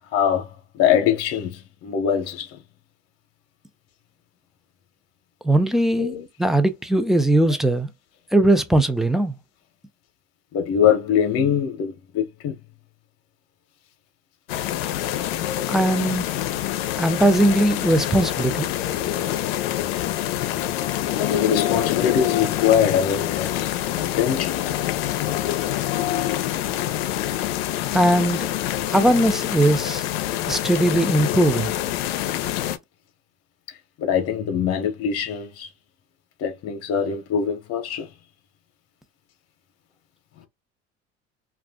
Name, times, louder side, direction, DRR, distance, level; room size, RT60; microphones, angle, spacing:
voice 1, 0.1-2.6 6.0-6.3 10.5-12.6 21.2-23.7 24.0-24.6 34.0-35.7 36.4-38.1 40.4-40.5, left 8 dB, 55° left, 0.9 m, -23 dB
voice 2, 5.4-6.1 6.4-7.9 8.3-9.4 15.7-16.2 17.0-18.7 27.9-28.5 28.9-30.0 30.5-31.7, right 1 dB, ahead, 0.5 m, -19 dB
sound 1, 14.5-32.8, left 12 dB, 85° left, 0.5 m, -26 dB
2.4 x 2.3 x 3.4 m
supercardioid pair, 85°, 30 cm